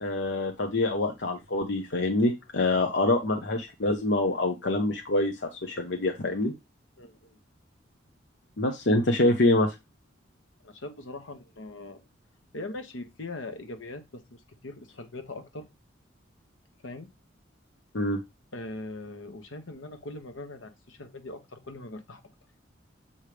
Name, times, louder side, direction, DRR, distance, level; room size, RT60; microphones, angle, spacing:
voice 1, 0.0-6.5 8.6-9.7 17.9-18.2, left 2 dB, 60° left, 0.8 m, -25 dB
voice 2, 7.0-7.4 10.6-12.0 12.5-15.6 16.8-17.1 18.5-22.2, left 2 dB, 80° left, 1.2 m, -41 dB
7.2 x 3.3 x 5.0 m
head